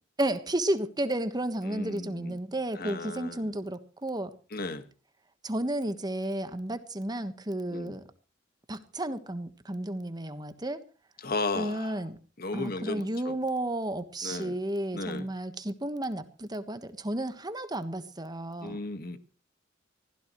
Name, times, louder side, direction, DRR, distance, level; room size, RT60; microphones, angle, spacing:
voice 1, 0.2-4.3 5.4-8.0 8.7-10.8 11.5-12.2 12.5-18.8, right 1 dB, 20° right, 1.3 m, -32 dB
voice 2, 1.6-2.4 2.7-3.5 4.5-4.8 7.7-8.0 11.2-12.0 12.4-13.3 14.2-14.5 14.9-15.3 18.6-19.2, left 3 dB, 50° left, 1.6 m, -35 dB
25.0 x 16.0 x 3.1 m
head